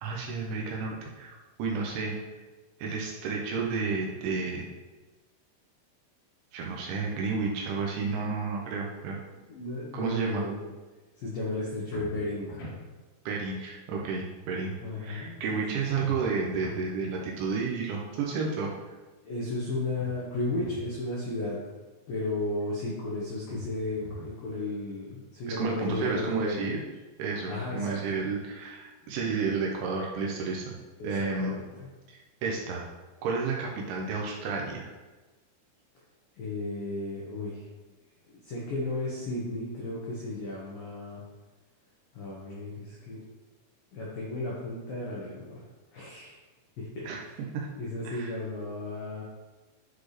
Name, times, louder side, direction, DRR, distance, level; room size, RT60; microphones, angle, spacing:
voice 1, 0.0-2.2 2.8-4.7 6.5-9.2 9.9-10.4 13.3-14.7 15.0-18.7 25.5-26.8 27.2-30.7 31.0-31.5 32.1-32.9 33.2-34.9 47.1-47.2 47.5-47.7 48.0-48.3, right 4 dB, 75° right, -2 dB, 3.0 m, -31 dB
voice 2, 9.3-10.6 11.2-12.7 14.8-15.8 19.2-21.6 22.1-26.8 27.5-28.2 31.0-31.9 36.4-37.7 38.3-41.2 42.1-43.2 43.9-45.6 45.9-46.4 46.8-47.4 47.8-49.2, left 2 dB, 85° left, -5 dB, 2.0 m, -34 dB
sound 1, 11.9-12.8 16.0-16.9 20.0-20.9 23.5-24.4, left 1 dB, 65° left, 4.8 m, -43 dB
12.0 x 4.2 x 3.3 m, 1.2 s
omnidirectional pair, 6.0 m